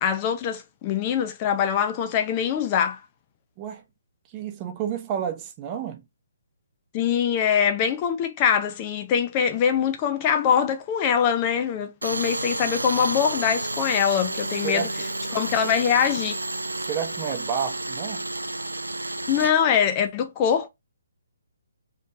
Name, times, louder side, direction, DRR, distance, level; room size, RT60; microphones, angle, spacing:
voice 1, 0.0-3.0 6.9-14.9 15.3-16.4 19.3-20.7, left 8 dB, 25° left, 0.8 m, -23 dB
voice 2, 4.3-6.0 14.6-15.4 15.6-15.8 16.9-18.2, right 8 dB, 20° right, 0.9 m, -31 dB
Tools, 12.0-19.5, right 2 dB, 80° right, 0.5 m, -31 dB
5.3 x 3.3 x 2.6 m
figure-of-eight pair, 135°, 0 cm